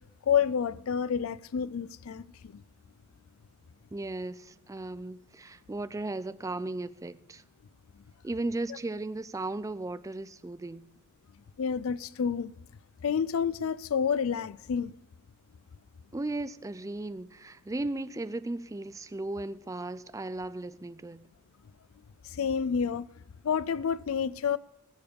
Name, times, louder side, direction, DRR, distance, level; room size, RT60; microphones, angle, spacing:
voice 1, 0.3-2.6 11.6-12.5 13.0-14.9 22.2-23.1 23.4-24.6, left 7 dB, 70° left, 0.4 m, -29 dB
voice 2, 3.9-7.4 8.2-10.9 16.1-21.2, right 2 dB, 15° right, 0.4 m, -36 dB
20.5 x 7.0 x 5.2 m
head